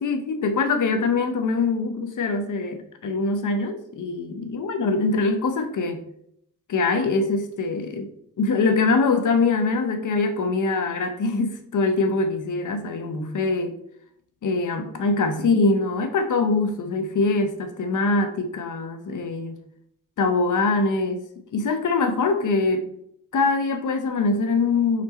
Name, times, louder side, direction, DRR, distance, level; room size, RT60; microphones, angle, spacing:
voice 1, 0.0-6.0 6.7-8.1 8.4-13.7 14.4-19.6 20.2-21.2 21.5-22.9 23.3-25.0, left 3 dB, 65° left, 7 dB, 0.9 m, -23 dB
5.9 x 4.3 x 4.2 m, 0.71 s
wide cardioid pair, 170°, 33 cm